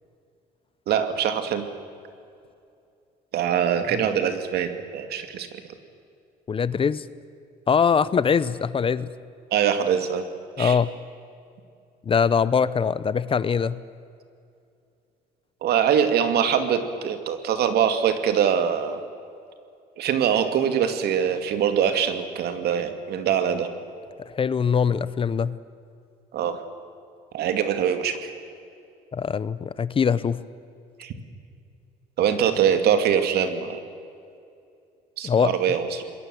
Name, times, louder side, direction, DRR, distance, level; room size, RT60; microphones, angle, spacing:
voice 1, 0.9-1.7 3.3-5.5 9.5-10.2 10.6-10.8 15.6-19.0 20.0-23.7 26.3-26.6 27.3-28.3 31.0-31.1 32.2-33.8 35.2-36.0, right 8 dB, 70° right, 8 dB, 2.5 m, -23 dB
voice 2, 6.5-7.0 7.7-9.1 10.6-10.9 12.1-13.8 24.3-25.6 29.1-30.4 35.2-35.5, left 6 dB, 30° left, 17 dB, 0.8 m, -22 dB
27.0 x 21.5 x 7.9 m, 2.5 s
cardioid pair, 110°, 17 cm